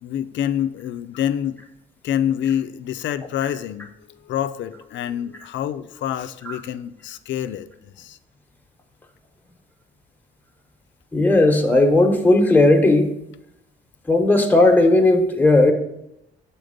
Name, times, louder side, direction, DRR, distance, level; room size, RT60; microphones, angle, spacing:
voice 1, 0.0-1.6 2.0-3.9 4.2-8.2, left 10 dB, 70° left, 0.5 m, -26 dB
voice 2, 11.1-13.1 14.1-15.7, left 2 dB, 10° left, 1.1 m, -15 dB
6.4 x 4.4 x 5.1 m
cardioid pair, 90°, 20 cm